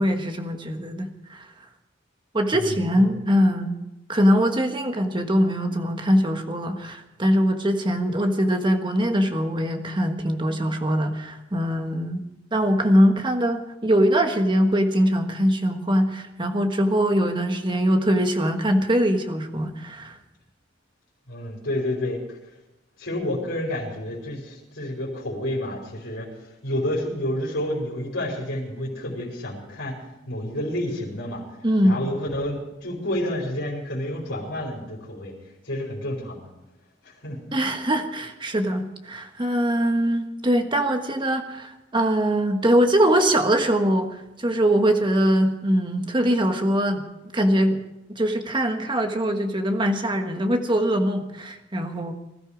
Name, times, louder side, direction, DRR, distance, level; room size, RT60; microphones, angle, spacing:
voice 1, 0.0-1.5 2.3-3.8 4.1-12.2 12.5-20.2 31.6-32.0 37.5-47.0 47.3-47.8 48.1-52.1, equal, 25° right, 5 dB, 1.4 m, -22 dB
voice 2, 2.5-3.1 21.3-22.4 23.0-30.0 30.3-31.4 31.8-35.3 35.6-36.5 37.0-37.5, left 1 dB, 75° left, -4 dB, 4.6 m, -30 dB
20.0 x 13.0 x 5.1 m, 0.92 s
head